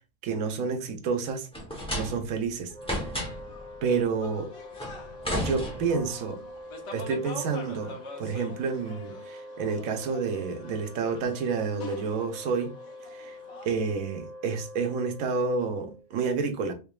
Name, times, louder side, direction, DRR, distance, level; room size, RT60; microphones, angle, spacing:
voice 1, 0.2-1.5 1.9-2.7 3.8-4.5 5.4-6.4 6.9-12.7 13.1-13.4 13.6-16.7, right 5 dB, 80° right, 1.1 m, -29 dB
sound 1, 1.5-2.4 2.8-3.6 4.8-6.2, equal, 5° left, 0.6 m, -32 dB
Wind instrument woodwind instrument, 2.7-16.1, left 1 dB, 35° right, 1.0 m, -45 dB
sound 2, 3.2-13.9, left 2 dB, 60° left, 1.1 m, -45 dB
3.6 x 3.6 x 2.3 m
omnidirectional pair, 1.5 m